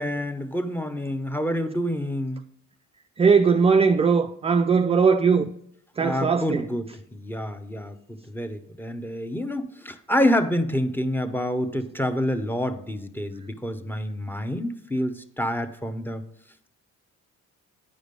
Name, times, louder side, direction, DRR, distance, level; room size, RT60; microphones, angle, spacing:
voice 1, 0.0-2.4 6.0-16.2, equal, 5° left, 0.8 m, -27 dB
voice 2, 3.2-5.5 6.0-6.6, right 5 dB, 20° right, 0.4 m, -19 dB
9.5 x 5.0 x 5.3 m
cardioid pair, 90°, 30 cm